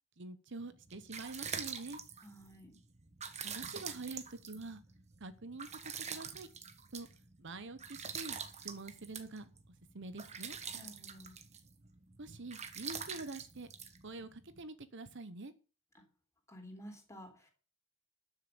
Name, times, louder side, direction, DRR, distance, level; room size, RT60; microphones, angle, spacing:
voice 1, 0.2-2.0 3.4-4.8 5.2-6.5 6.9-7.1 7.4-8.4 8.6-9.5 9.9-10.6 12.2-13.7 14.0-15.5, right 3 dB, 55° right, 12 dB, 0.9 m, -46 dB
sound 1, 0.7-14.6, right 6 dB, 30° right, 1.3 m, -46 dB
voice 2, 2.2-2.8 10.7-11.4 15.9-16.0 16.5-17.5, equal, 15° left, 3 dB, 3.6 m, -52 dB
12.5 x 6.9 x 6.9 m, 0.36 s
head